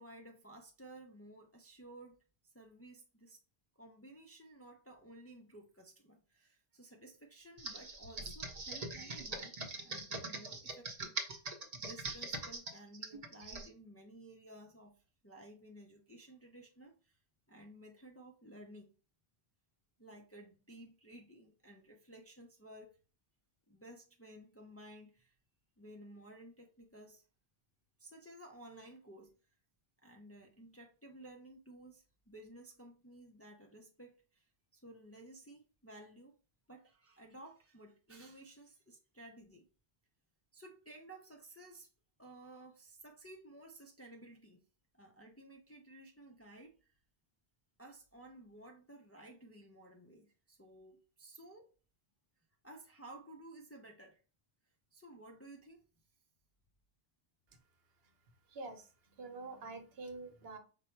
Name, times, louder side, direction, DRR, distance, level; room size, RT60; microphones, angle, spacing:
voice 1, 0.0-3.4 3.8-11.4 11.7-17.2 17.5-18.9 20.0-23.0 23.7-25.3 25.8-27.3 28.0-29.3 30.0-36.3 36.7-39.6 40.5-41.9 42.2-44.6 44.9-47.0 47.8-51.7 52.6-54.2 54.9-55.8, right 1 dB, 20° left, 0.4 m, -55 dB
Computer keyboard, 7.6-13.7, right 3 dB, 45° right, 0.8 m, -42 dB
voice 2, 58.5-60.6, right 3 dB, 75° right, 1.0 m, -47 dB
5.1 x 2.1 x 4.4 m
omnidirectional pair, 1.0 m